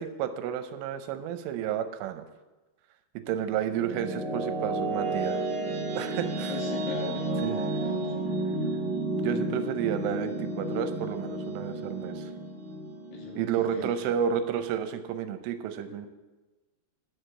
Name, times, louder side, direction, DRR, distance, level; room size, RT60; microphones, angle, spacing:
voice 1, 0.0-2.3 3.3-5.4 6.0-6.6 7.4-7.8 9.2-12.3 13.4-16.1, right 9 dB, 80° right, 8 dB, 3.1 m, -31 dB
sound 1, 3.3-14.3, right 2 dB, 45° right, 2.7 m, -32 dB
voice 2, 6.5-7.5 7.8-8.2 13.1-13.9, left 3 dB, 90° left, -2 dB, 5.2 m, -38 dB
11.0 x 6.4 x 7.8 m, 1.2 s
omnidirectional pair, 5.8 m